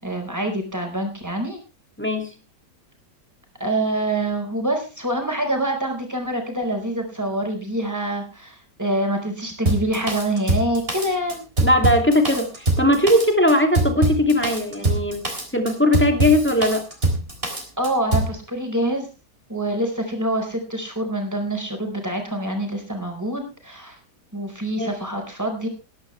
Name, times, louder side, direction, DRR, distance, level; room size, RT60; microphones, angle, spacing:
voice 1, 0.0-1.6 3.6-11.4 17.8-19.1 19.5-24.0 24.3-25.7, right 1 dB, 10° right, 3 dB, 4.4 m, -26 dB
voice 2, 2.0-2.3 11.6-15.3 15.5-16.8 24.8-24.9, left 1 dB, 5° left, 4 dB, 2.5 m, -19 dB
Drum kit, 9.7-18.3, right 2 dB, 35° right, 4.0 m, -23 dB
19.5 x 11.0 x 3.3 m, 0.32 s
omnidirectional pair, 1.8 m